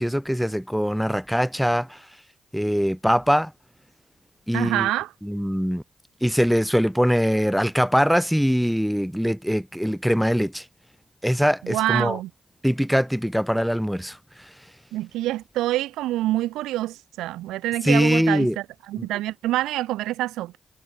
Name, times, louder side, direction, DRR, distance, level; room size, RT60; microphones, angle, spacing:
voice 1, 0.0-2.0 2.5-3.5 4.5-4.9 5.2-5.8 6.2-10.6 11.2-12.2 12.6-14.2 17.8-18.6 19.0-19.1, equal, ahead, 0.4 m, -22 dB
voice 2, 4.5-5.1 11.6-12.3 14.9-20.6, right 15 dB, 85° right, 1.0 m, -26 dB
hypercardioid pair, 40°, 0 cm